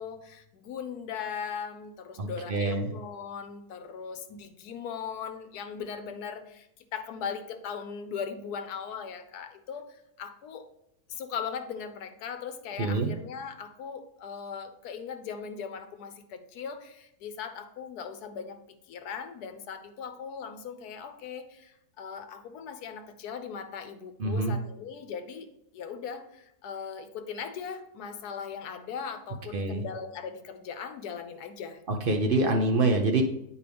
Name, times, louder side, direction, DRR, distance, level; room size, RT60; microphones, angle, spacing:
voice 1, 0.0-10.6 11.1-18.6 18.9-25.5 25.7-31.8, left 6 dB, 85° left, 8 dB, 1.3 m, -39 dB
voice 2, 2.2-2.9 12.8-13.1 24.2-24.6 29.5-29.8 31.9-33.2, right 2 dB, 55° right, 3 dB, 0.6 m, -26 dB
9.0 x 4.6 x 3.4 m, 0.80 s
omnidirectional pair, 1.6 m